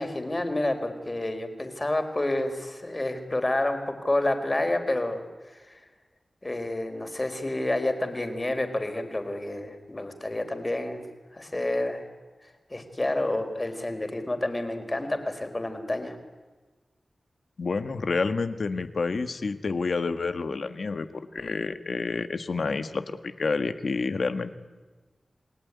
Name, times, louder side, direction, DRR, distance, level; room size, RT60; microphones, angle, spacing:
voice 1, 0.0-5.8 6.4-11.1 11.3-12.1 12.7-16.2, left 1 dB, 30° left, 7 dB, 4.2 m, -29 dB
voice 2, 17.6-21.1 21.3-24.5, left 4 dB, 75° left, 10 dB, 1.7 m, -29 dB
29.0 x 19.0 x 9.8 m, 1.3 s
wide cardioid pair, 60°, 0 cm